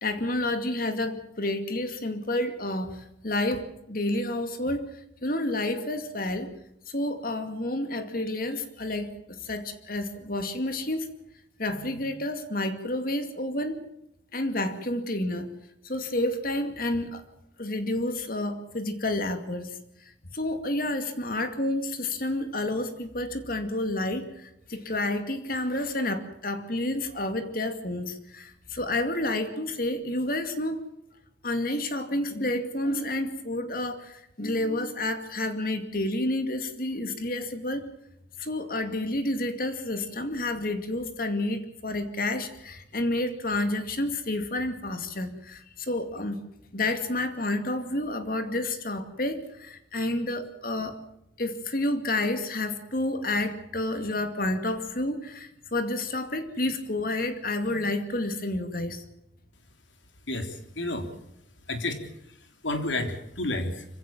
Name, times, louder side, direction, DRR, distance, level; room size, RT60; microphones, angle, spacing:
voice 1, 0.0-4.8 5.2-6.5 6.9-11.1 11.6-13.8 14.3-15.5 15.8-17.2 17.6-30.8 31.4-37.9 38.4-46.4 46.7-51.0 51.4-59.0, left 1 dB, 50° left, 8 dB, 2.4 m, -30 dB
voice 2, 60.3-61.1 61.7-63.9, left 2 dB, 90° left, 6 dB, 3.5 m, -31 dB
25.5 x 16.5 x 7.4 m, 0.80 s
head